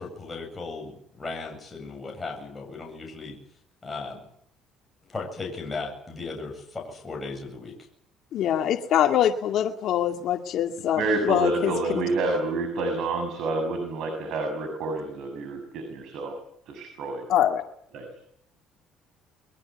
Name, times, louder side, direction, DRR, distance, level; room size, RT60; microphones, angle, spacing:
voice 1, 0.0-3.4 3.8-4.2 5.0-7.7, left 3 dB, 15° left, 0 dB, 7.7 m, -36 dB
voice 2, 8.3-12.1 17.3-17.6, left 10 dB, 60° left, 6 dB, 2.2 m, -24 dB
voice 3, 11.0-16.3 16.7-17.2 17.9-18.1, right 2 dB, 65° right, 6 dB, 6.8 m, -28 dB
23.5 x 23.0 x 8.2 m, 0.68 s
cardioid pair, 115°, 0 cm